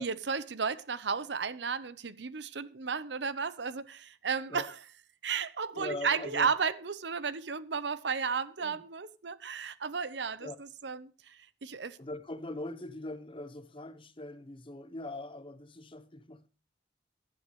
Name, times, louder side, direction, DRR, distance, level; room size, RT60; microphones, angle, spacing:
voice 1, 0.0-4.8 5.2-12.0, right 5 dB, 70° right, 0.8 m, -34 dB
voice 2, 5.7-6.5 8.6-8.8 10.4-10.6 12.0-16.5, left 1 dB, 30° left, 1.1 m, -41 dB
16.0 x 11.5 x 3.1 m
head